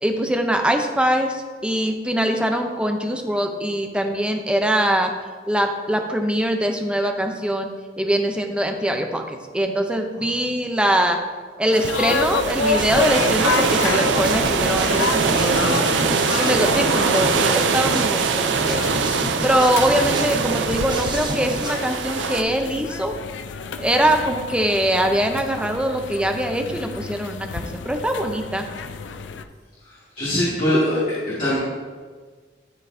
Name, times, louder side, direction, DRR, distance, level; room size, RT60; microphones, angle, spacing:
voice 1, 0.0-5.1 5.5-7.7 8.0-11.2 11.6-18.8 19.4-23.2 23.8-28.6, right 1 dB, 5° right, 4 dB, 0.6 m, -22 dB
sound 1, 11.7-22.4, right 5 dB, 90° right, 0.5 m, -22 dB
sound 2, 11.8-29.4, left 5 dB, 85° left, 0.4 m, -30 dB
sound 3, 12.7-21.7, right 1 dB, 25° right, 1.0 m, -31 dB
voice 2, 30.2-31.6, left 1 dB, 50° left, -11 dB, 2.0 m, -21 dB
12.0 x 4.5 x 2.7 m, 1.5 s
head